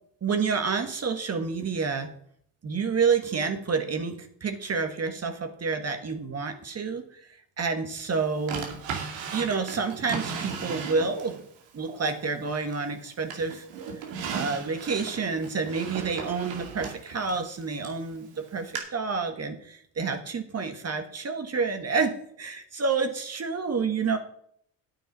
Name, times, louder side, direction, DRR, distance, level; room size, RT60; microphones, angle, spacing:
voice 1, 0.2-2.1 2.6-8.8 9.3-11.4 11.7-13.6 14.3-24.2, right 5 dB, 35° right, 7 dB, 1.5 m, -29 dB
Drawer open or close, 8.5-11.4 11.9-12.9 13.3-18.0 18.8-18.9, right 6 dB, 85° right, 2.5 m, -36 dB
9.1 x 7.3 x 5.4 m, 0.66 s
cardioid pair, 95°, 43 cm